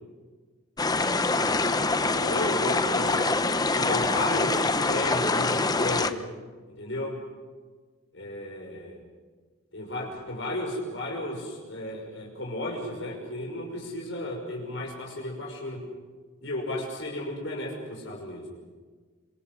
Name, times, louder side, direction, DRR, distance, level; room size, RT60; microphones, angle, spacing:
sound 1, 0.8-6.1, left 3 dB, 20° left, 0.9 m, -25 dB
voice 1, 2.0-3.1 3.7-6.2 6.8-7.2 8.1-9.0 9.7-15.8 16.4-18.5, left 1 dB, 65° left, -1 dB, 6.0 m, -33 dB
26.5 x 26.0 x 6.3 m, 1.4 s
head